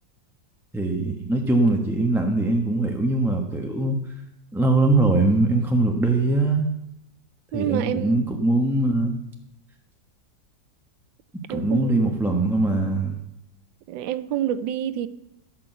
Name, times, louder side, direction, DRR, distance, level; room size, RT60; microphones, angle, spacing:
voice 1, 0.7-4.0 4.5-6.6 7.5-9.2 11.5-13.2, right 2 dB, ahead, 0.9 m, -22 dB
voice 2, 7.5-8.3 11.5-12.1 13.9-15.1, right 11 dB, 85° right, 1.4 m, -28 dB
16.0 x 6.1 x 7.9 m
omnidirectional pair, 2.0 m